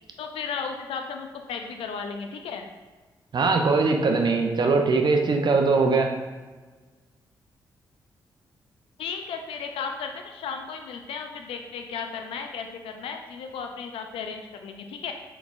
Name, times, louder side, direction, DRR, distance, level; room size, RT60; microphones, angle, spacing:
voice 1, 0.2-2.7 9.0-15.1, left 6 dB, 75° left, 5 dB, 0.4 m, -35 dB
voice 2, 3.3-6.1, right 4 dB, 50° right, 3 dB, 0.6 m, -21 dB
4.1 x 3.2 x 2.4 m, 1.3 s
hypercardioid pair, 40°, 10 cm